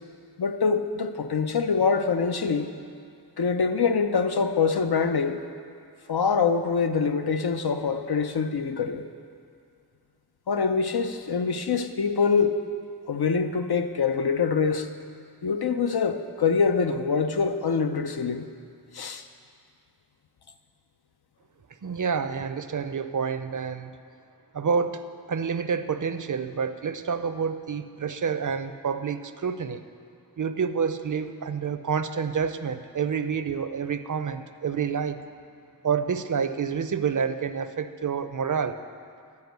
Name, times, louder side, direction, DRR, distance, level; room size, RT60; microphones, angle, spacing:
voice 1, 0.4-2.7 3.4-5.4 6.1-9.1 10.5-12.6 13.1-14.9 15.4-18.5 18.9-19.2, left 5 dB, 75° left, 8 dB, 0.6 m, -24 dB
voice 2, 21.8-23.9 24.5-29.8 30.4-35.2 35.8-38.8, right 6 dB, 55° right, 11 dB, 0.5 m, -28 dB
11.0 x 5.2 x 8.0 m, 2.3 s
wide cardioid pair, 40°, 38 cm